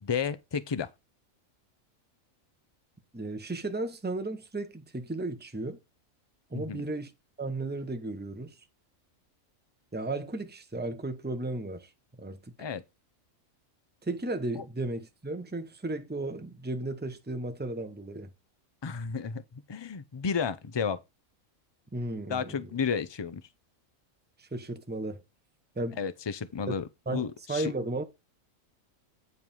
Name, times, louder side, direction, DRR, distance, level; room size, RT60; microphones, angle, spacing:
voice 1, 0.0-0.9 6.5-6.8 12.6-12.8 14.6-14.7 18.8-19.4 19.7-21.0 22.3-23.4 26.0-26.8 27.1-27.7, left 6 dB, 35° left, 0.4 m, -32 dB
voice 2, 3.1-5.8 6.5-7.1 7.4-8.6 9.9-11.9 12.2-12.5 14.0-18.3 21.9-22.8 24.4-25.2 25.8-26.0 26.7-26.8 27.1-28.0, right 2 dB, 10° right, 0.9 m, -34 dB
9.4 x 4.8 x 5.4 m
omnidirectional pair, 1.4 m